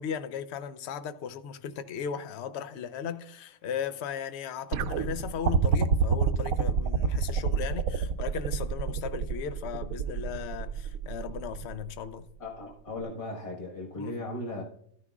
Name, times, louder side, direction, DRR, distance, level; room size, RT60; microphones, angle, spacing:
voice 1, 0.0-12.3 14.0-14.1, left 8 dB, 60° left, 0.8 m, -37 dB
sound 1, 4.7-11.9 13.0-13.1, right 6 dB, 80° right, 1.1 m, -27 dB
voice 2, 12.4-14.6, left 2 dB, 25° left, 1.4 m, -37 dB
13.0 x 9.6 x 2.4 m
omnidirectional pair, 1.5 m